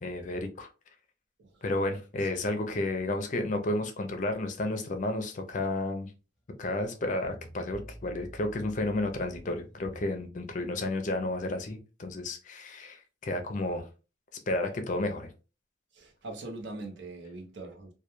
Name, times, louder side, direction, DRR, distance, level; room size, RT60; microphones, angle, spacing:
voice 1, 0.0-0.7 1.6-6.1 6.6-13.8 14.5-15.3, left 2 dB, 40° left, 0.4 m, -32 dB
sound 1, 6.5-6.6 6.8-10.0, right 1 dB, ahead, 0.8 m, -49 dB
voice 2, 15.9-17.9, right 2 dB, 65° right, 0.6 m, -42 dB
2.2 x 2.2 x 2.9 m
head